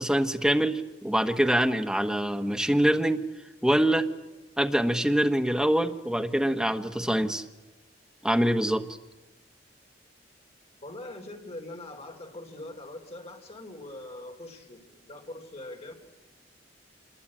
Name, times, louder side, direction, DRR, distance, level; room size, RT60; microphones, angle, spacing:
voice 1, 0.0-3.2 3.6-4.1 4.6-7.4 8.2-8.9, right 1 dB, 5° right, 5 dB, 1.2 m, -24 dB
voice 2, 10.8-15.9, left 1 dB, 35° left, 3 dB, 3.8 m, -42 dB
26.5 x 21.5 x 8.8 m, 1.1 s
head